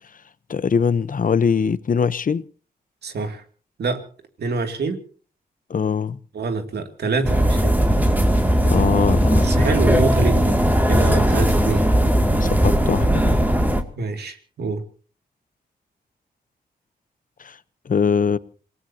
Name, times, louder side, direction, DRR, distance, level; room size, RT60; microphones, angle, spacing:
voice 1, 0.5-2.4 5.7-6.2 8.6-9.6 12.4-13.4 17.4-17.6 17.9-18.4, left 6 dB, 55° left, 0.9 m, -22 dB
voice 2, 3.0-3.4 3.8-4.0 4.4-5.0 6.3-7.8 9.4-10.6 10.9-11.9 14.0-14.8, right 3 dB, 90° right, 2.5 m, -25 dB
sound 1, 7.2-13.8, equal, 10° right, 2.5 m, -18 dB
27.5 x 18.5 x 2.9 m
cardioid pair, 80°, 17 cm